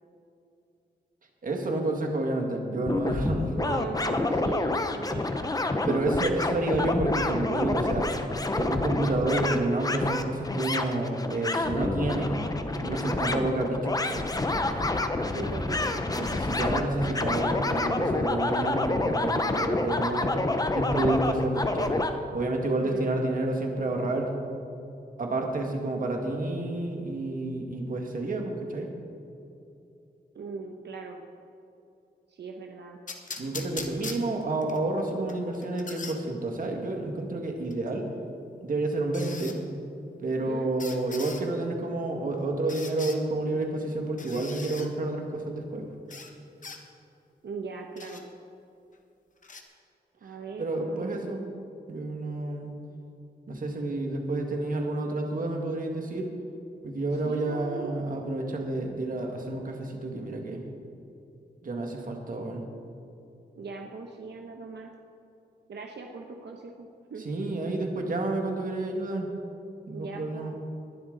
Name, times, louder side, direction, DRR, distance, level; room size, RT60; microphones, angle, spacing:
voice 1, 1.4-3.5 5.9-8.1 8.5-12.3 12.8-14.3 16.2-20.4 20.7-21.9 22.3-24.3 25.2-28.9 33.4-38.1 38.6-39.6 40.2-45.8 50.6-51.4 51.9-52.7 53.5-56.3 56.8-60.6 61.6-62.6 67.3-69.3 69.9-70.5, right 2 dB, 50° right, 2 dB, 1.9 m, -29 dB
sound 1, 2.8-22.1, left 2 dB, 20° left, 0.7 m, -28 dB
voice 2, 3.5-5.9 15.2-16.1 22.8-23.2 30.3-31.2 32.3-33.0 40.4-40.7 47.4-48.3 50.2-51.2 57.1-58.0 63.5-64.9 65.7-67.3 69.9-70.6, right 4 dB, 85° right, 2 dB, 1.0 m, -39 dB
sound 2, 33.1-34.8 35.3-36.2 37.7-37.8 39.1-39.6 40.8-41.4 42.7-43.2 44.2-44.9 46.1-46.3 46.6-46.8 48.0-48.2 49.4-49.6, left 4 dB, 50° left, 1.2 m, -40 dB
20.5 x 11.5 x 4.0 m, 2.7 s
wide cardioid pair, 165°, 17 cm